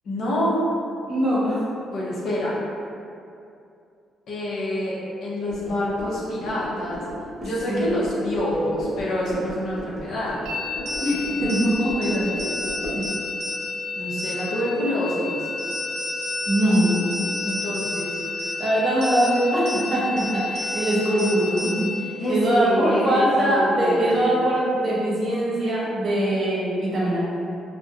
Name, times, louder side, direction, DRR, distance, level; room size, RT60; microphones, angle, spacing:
voice 1, 0.0-0.6 1.9-2.6 4.3-7.0 7.4-10.4 14.0-15.5 17.5-18.2 22.2-24.3, left 1 dB, 70° left, -6 dB, 0.6 m, -27 dB
voice 2, 1.1-1.6 7.7-7.8 11.0-12.3 12.9-13.0 16.5-17.1 18.6-21.9 22.3-27.2, right 1 dB, 50° right, -7 dB, 0.7 m, -22 dB
sound 1, 5.5-13.1, left 1 dB, 45° left, 1.0 m, -37 dB
sound 2, 10.5-22.1, left 2 dB, 80° right, 0.4 m, -30 dB
2.5 x 2.1 x 2.4 m, 2.5 s
cardioid pair, 90°, 0 cm